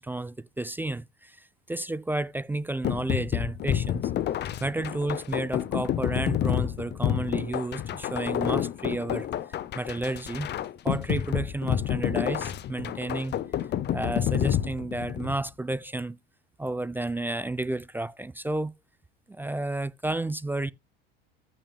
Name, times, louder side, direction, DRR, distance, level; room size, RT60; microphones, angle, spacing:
voice 1, 0.0-4.1 4.6-9.3 9.7-10.5 10.8-13.4 13.9-16.2 16.6-18.7 19.3-20.7, right 2 dB, 5° right, 0.3 m, -31 dB
sound 1, 2.8-15.4, left 11 dB, 35° left, 0.7 m, -29 dB
14.5 x 5.8 x 2.3 m
hypercardioid pair, 95°, 30 cm